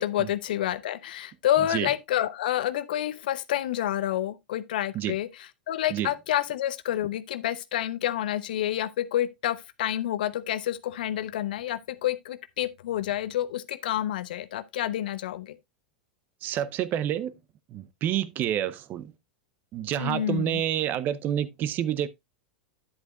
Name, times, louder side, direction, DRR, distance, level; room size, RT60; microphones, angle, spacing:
voice 1, 0.0-15.6 20.0-20.6, left 12 dB, 70° left, 0.6 m, -29 dB
voice 2, 16.4-17.4 17.7-19.1 19.7-22.1, right 11 dB, 40° right, 0.6 m, -28 dB
9.9 x 7.8 x 2.3 m
hypercardioid pair, 100°, 5 cm